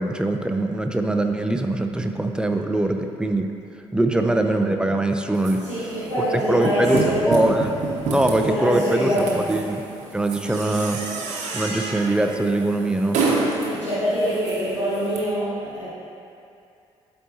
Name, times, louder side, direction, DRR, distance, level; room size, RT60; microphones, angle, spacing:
voice 1, 0.0-3.5 3.9-5.6 6.5-7.8 8.1-9.8 10.1-11.0 11.5-13.2, right 1 dB, 5° right, 4 dB, 0.5 m, -22 dB
sound 1, 5.3-15.2, right 3 dB, 55° right, 0.9 m, -29 dB
voice 2, 5.6-7.3 8.3-9.5 13.6-15.9, equal, 90° left, -12 dB, 0.9 m, -25 dB
11.5 x 4.4 x 2.7 m, 2.6 s
figure-of-eight pair, 40°, 14 cm